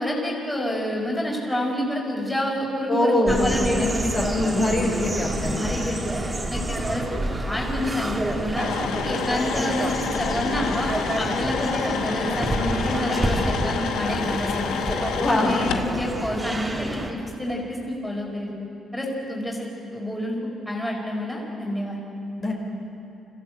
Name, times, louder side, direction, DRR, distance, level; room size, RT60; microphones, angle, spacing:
voice 1, 0.0-4.6 5.4-6.2 6.5-7.0 7.4-8.7 9.0-10.9 11.2-14.8 15.4-18.5 18.9-20.4 20.6-22.0, left 1 dB, 5° left, -2 dB, 4.8 m, -28 dB
voice 2, 2.9-5.6 15.1-15.6 22.4-22.5, left 1 dB, 40° left, -2 dB, 5.0 m, -23 dB
sound 1, 3.3-17.1, right 1 dB, 20° right, 2.7 m, -29 dB
sound 2, 8.6-15.9, left 7 dB, 85° left, 1.1 m, -29 dB
25.5 x 15.5 x 8.0 m, 2.9 s
cardioid pair, 90°, 0 cm